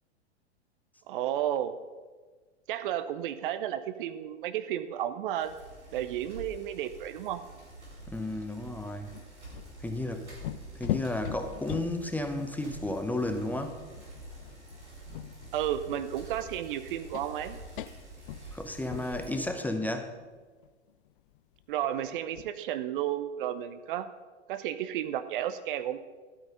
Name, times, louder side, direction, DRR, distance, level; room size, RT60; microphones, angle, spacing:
voice 1, 1.1-1.7 2.7-5.6 5.9-7.4 15.5-17.6 21.7-24.1 24.5-26.0, right 11 dB, 50° right, 12 dB, 0.8 m, -32 dB
Bicycle, 5.4-19.5, right 2 dB, 85° right, 4.2 m, -47 dB
sound 1, 7.6-7.7 8.0-8.2 8.5-15.6 16.0-16.2 16.6-16.8 17.1-17.3 17.7-18.6 18.9-22.5, left 14 dB, 50° left, 0.5 m, -40 dB
voice 2, 8.1-9.1 9.8-10.3 10.7-13.8 18.5-20.1, left 1 dB, 5° left, 6 dB, 0.7 m, -33 dB
12.5 x 9.0 x 5.3 m, 1.4 s
figure-of-eight pair, 95°, 34 cm